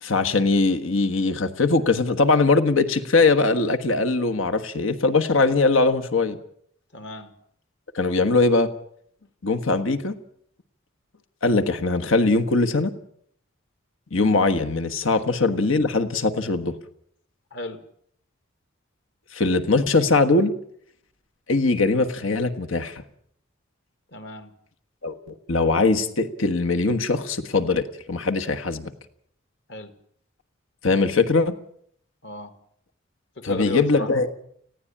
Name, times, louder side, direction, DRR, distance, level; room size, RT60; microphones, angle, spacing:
voice 1, 0.0-6.4 7.9-8.7 9.4-10.1 11.4-12.9 14.1-16.8 19.3-20.5 21.5-23.0 25.0-25.2 25.5-28.9 30.8-31.6 33.4-34.3, left 3 dB, 85° left, 7 dB, 1.4 m, -21 dB
voice 2, 6.9-7.3 17.5-17.8 24.1-24.5 29.7-29.9 32.2-32.5 33.4-34.1, left 2 dB, 60° left, 9 dB, 2.0 m, -34 dB
19.5 x 16.0 x 8.7 m, 0.67 s
head